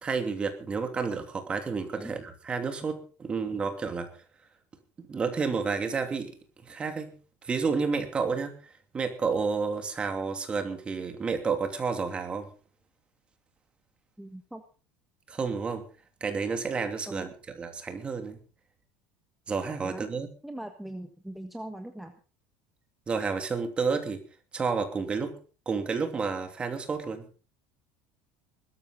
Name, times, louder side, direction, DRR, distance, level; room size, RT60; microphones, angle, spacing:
voice 1, 0.0-4.1 5.0-6.4 6.6-7.1 7.4-12.5 15.3-15.8 16.2-17.3 17.6-18.4 19.5-20.3 23.1-24.2 24.5-25.4 25.7-27.2, right 5 dB, 20° right, 7 dB, 2.9 m, -30 dB
voice 2, 14.2-14.6 17.1-17.3 19.8-20.0 20.4-22.1, right 1 dB, 5° right, 6 dB, 1.4 m, -41 dB
20.5 x 13.5 x 4.0 m, 0.37 s
cardioid pair, 145°, 5 cm